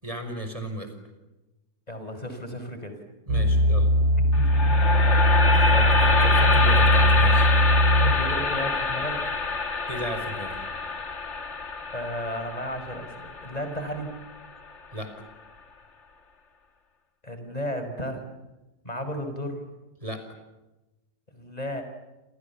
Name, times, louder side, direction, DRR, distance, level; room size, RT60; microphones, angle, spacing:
voice 1, 0.0-0.9 3.3-3.9 5.5-7.5 7.7-8.0 9.9-10.6 14.9-15.1 20.0-20.2, equal, 20° right, 7 dB, 5.5 m, -35 dB
voice 2, 1.9-2.9 4.2-4.6 5.5-5.6 8.0-9.2 11.9-14.1 17.2-18.2 18.8-19.6 21.3-21.8, equal, 20° left, 7 dB, 5.3 m, -34 dB
sound 1, 3.3-8.4 9.0-9.1, equal, 70° right, 5.2 m, -20 dB
sound 2, 4.3-14.5, left 4 dB, 45° left, 2.2 m, -26 dB
28.5 x 28.0 x 7.2 m, 1.0 s
omnidirectional pair, 1.8 m